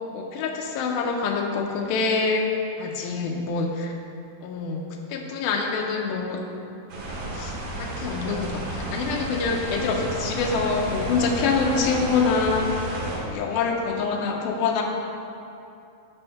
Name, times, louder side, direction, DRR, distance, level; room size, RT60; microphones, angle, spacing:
voice 1, 0.1-2.4 2.8-3.9 4.4-6.4 7.3-14.8, left 4 dB, 85° left, 1 dB, 2.5 m, -26 dB
sound 1, 6.9-13.2, right 1 dB, 60° right, 1.5 m, -32 dB
6.2 x 5.5 x 5.6 m, 2.7 s
omnidirectional pair, 4.1 m